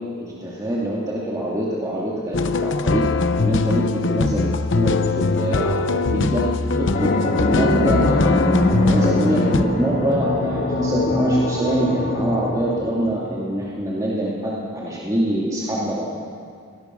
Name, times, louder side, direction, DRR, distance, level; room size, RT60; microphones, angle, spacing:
voice 1, 0.2-3.1 3.4-4.5 4.7-8.4 8.7-16.1, right 1 dB, 15° right, -6 dB, 2.5 m, -25 dB
sound 1, 2.3-9.7, left 3 dB, 60° left, 0.8 m, -21 dB
sound 2, 6.9-13.7, left 2 dB, 45° left, 1.9 m, -24 dB
Animal, 7.2-11.2, equal, ahead, 1.2 m, -25 dB
23.0 x 19.5 x 6.2 m, 2.3 s
head